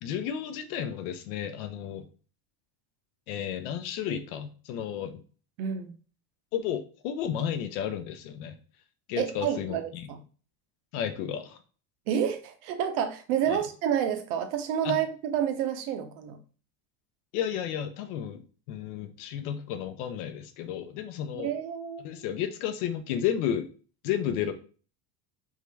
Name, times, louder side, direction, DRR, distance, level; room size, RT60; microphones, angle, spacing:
voice 1, 0.0-2.1 3.3-5.2 6.5-8.6 9.1-10.1 10.9-11.6 13.5-13.6 14.8-15.0 17.3-21.5 22.0-23.7 24.0-24.5, left 9 dB, 60° left, 8 dB, 0.7 m, -32 dB
voice 2, 5.6-5.9 9.2-10.2 12.1-16.4 21.3-22.0, right 9 dB, 60° right, 7 dB, 0.9 m, -29 dB
3.7 x 3.3 x 3.3 m, 0.38 s
cardioid pair, 165°, 49 cm